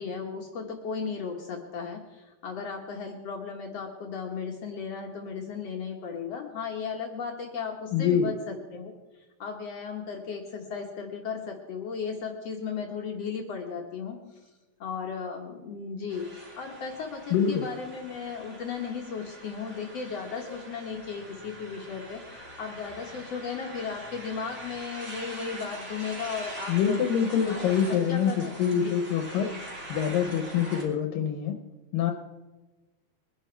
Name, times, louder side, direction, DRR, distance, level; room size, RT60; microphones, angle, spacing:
voice 1, 0.0-8.9 9.4-14.5 14.8-27.0 27.5-29.0, left 5 dB, 60° left, 1 dB, 1.8 m, -36 dB
voice 2, 7.9-8.3 17.3-17.7 26.7-29.5 29.9-31.6 31.9-32.1, left 8 dB, 75° left, 5 dB, 2.5 m, -25 dB
sound 1, 16.1-30.8, right 1 dB, 20° right, 3.0 m, -43 dB
23.0 x 10.5 x 4.5 m, 1.2 s
omnidirectional pair, 4.2 m